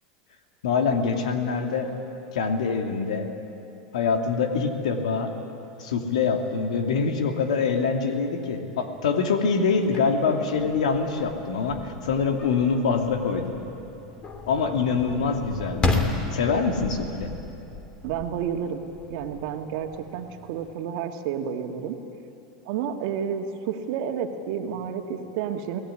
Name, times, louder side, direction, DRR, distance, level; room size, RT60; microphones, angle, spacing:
voice 1, 0.6-1.9 2.3-3.3 3.9-5.3 5.8-13.6 14.5-17.3, left 5 dB, 90° left, 5 dB, 2.4 m, -25 dB
sound 1, 9.8-20.7, left 3 dB, 25° left, 2.8 m, -34 dB
voice 2, 18.0-18.8 19.1-22.0 22.7-25.8, right 8 dB, 65° right, 4 dB, 2.0 m, -30 dB
23.0 x 17.5 x 9.9 m, 2.8 s
supercardioid pair, 115°, 4 cm